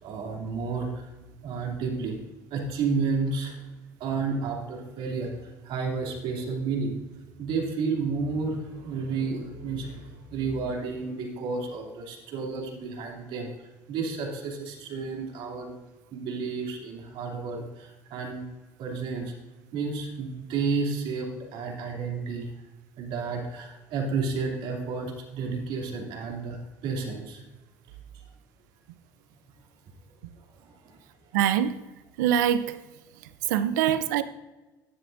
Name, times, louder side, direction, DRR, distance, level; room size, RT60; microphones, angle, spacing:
voice 1, 0.0-1.1 1.4-2.2 2.5-3.6 4.0-6.9 7.4-13.5 13.9-15.8 16.1-18.4 18.8-19.3 19.7-22.5 23.0-27.4 30.6-31.0, right 4 dB, 65° right, 2.7 m, -31 dB
voice 2, 31.3-31.8 32.2-32.8 33.5-34.2, right 10 dB, 85° right, 0.6 m, -24 dB
12.5 x 9.8 x 2.6 m
hypercardioid pair, 70°, 9 cm